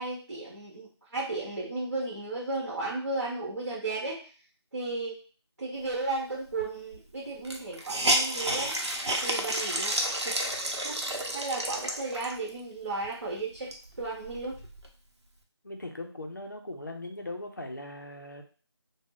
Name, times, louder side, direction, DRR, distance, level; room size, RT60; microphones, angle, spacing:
voice 1, 0.0-4.3 4.7-5.2 5.6-8.8 9.2-10.3 10.8-11.0 11.3-13.7 14.0-14.6, right 2 dB, 45° right, -6 dB, 0.8 m, -34 dB
Hiss, 6.6-6.7 6.9-7.0 7.4-12.5 13.0-13.1 13.5-14.9, right 1 dB, 85° right, 0.7 m, -31 dB
voice 2, 15.6-18.4, left 2 dB, 45° left, 3 dB, 0.5 m, -39 dB
2.4 x 2.1 x 3.4 m, 0.38 s
figure-of-eight pair, 180°, 14 cm